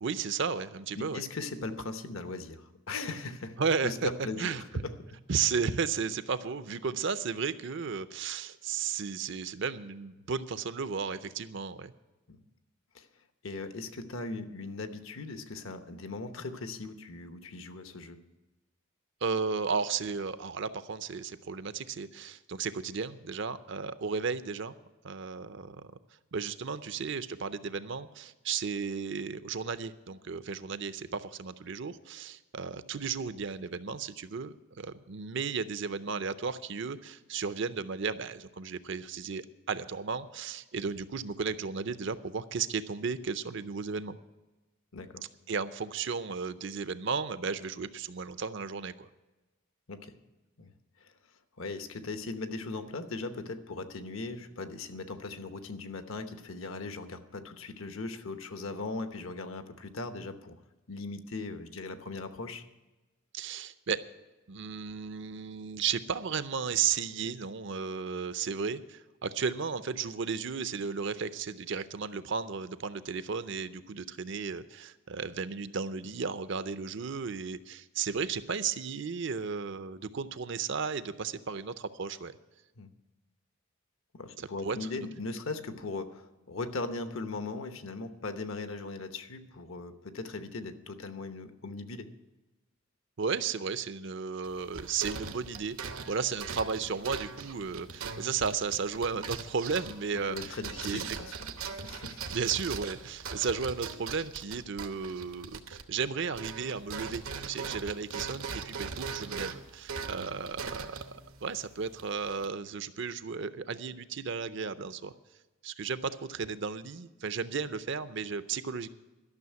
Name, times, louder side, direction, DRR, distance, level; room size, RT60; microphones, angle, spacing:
voice 1, 0.0-1.2 3.6-4.1 4.4-4.8 5.3-11.9 19.2-24.8 25.0-25.8 26.3-44.2 45.5-49.1 63.3-64.0 64.5-82.3 84.4-85.1 93.2-100.6 100.8-101.0 102.3-115.1 115.6-118.9, right 5 dB, 55° right, 13 dB, 0.6 m, -34 dB
voice 2, 0.9-3.6 3.8-4.9 12.3-12.4 12.9-13.1 13.4-18.2 44.9-45.2 49.9-50.1 50.6-50.7 51.0-51.1 51.6-60.5 60.9-62.7 82.8-82.9 84.1-92.1 100.3-102.3 110.2-110.3, left 3 dB, 70° left, 9 dB, 1.0 m, -39 dB
sound 1, 94.4-106.1 106.3-112.5, right 5 dB, 80° right, 0.9 m, -40 dB
12.5 x 6.5 x 9.4 m, 1.1 s
head